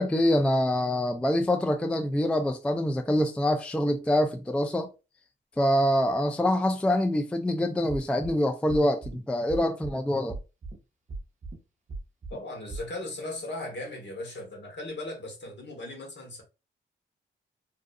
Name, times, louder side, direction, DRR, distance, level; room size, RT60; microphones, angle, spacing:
voice 1, 0.0-4.9 5.6-10.4, left 1 dB, 5° left, 0.3 m, -25 dB
sound 1, 7.9-8.4 8.7-9.2 9.5-10.0 10.3-10.8 11.1-11.6 11.9-12.4 12.7-12.8, right 3 dB, 35° right, 0.6 m, -37 dB
voice 2, 12.3-16.4, left 1 dB, 55° left, 1.1 m, -37 dB
2.6 x 2.4 x 2.2 m
cardioid pair, 65°, 21 cm